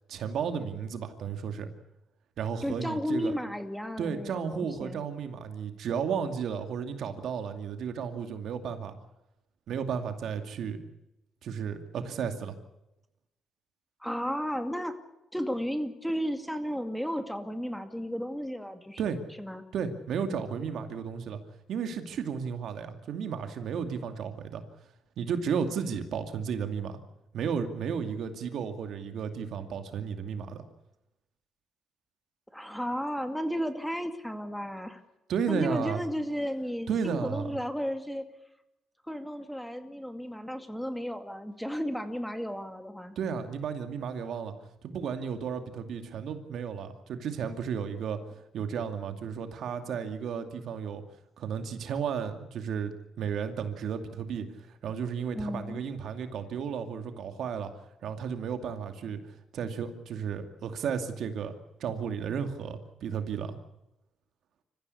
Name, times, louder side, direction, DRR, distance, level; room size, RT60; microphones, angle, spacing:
voice 1, 0.1-1.7 2.4-3.3 4.0-8.9 9.7-10.8 11.4-12.5 19.0-19.2 19.7-21.4 21.7-24.6 25.2-27.0 27.3-30.6 35.3-36.0 36.9-37.6 43.2-44.5 44.8-48.2 48.5-51.0 51.4-57.7 58.0-59.2 59.5-63.6, right 7 dB, 70° right, 7 dB, 2.4 m, -33 dB
voice 2, 2.6-5.0 14.0-15.0 15.3-19.0 19.4-19.6 32.5-35.0 35.5-38.2 39.0-43.2 55.3-55.8, equal, 5° left, 8 dB, 2.2 m, -33 dB
25.5 x 15.0 x 8.4 m, 0.94 s
cardioid pair, 90°, 0 cm